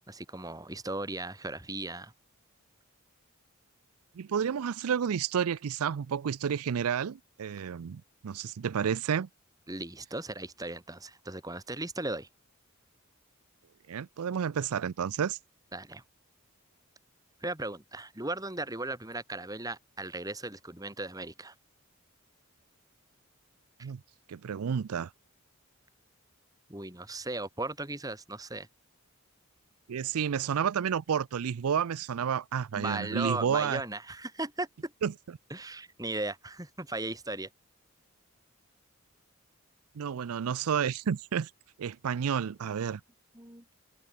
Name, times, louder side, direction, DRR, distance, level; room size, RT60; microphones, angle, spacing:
voice 1, 0.1-2.1 9.7-12.3 15.7-16.0 17.4-21.5 26.7-28.7 32.7-34.9 35.5-37.5 43.3-43.6, right 2 dB, 15° right, 2.5 m, -37 dB
voice 2, 4.2-9.3 13.9-15.4 23.8-24.0 24.3-25.1 29.9-33.8 35.0-35.1 40.0-41.5 41.8-43.0, right 7 dB, 80° right, 0.4 m, -30 dB
open air
head